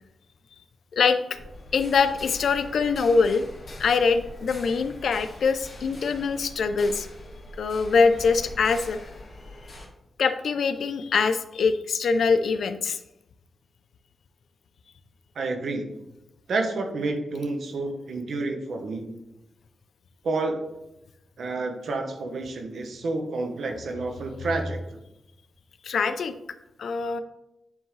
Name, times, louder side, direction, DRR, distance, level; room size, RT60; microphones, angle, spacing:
sound 1, 1.3-9.9, left 1 dB, 55° left, 2.0 m, -43 dB
voice 1, 1.7-3.5 3.8-7.1 7.6-9.0 10.2-13.0 25.8-26.3 26.8-27.2, left 5 dB, 75° left, 10 dB, 0.5 m, -23 dB
voice 2, 15.3-15.9 16.5-19.1 20.2-20.6 21.4-24.8, right 3 dB, 75° right, 4 dB, 1.0 m, -29 dB
9.6 x 3.7 x 3.2 m, 0.89 s
cardioid pair, 95°, 0 cm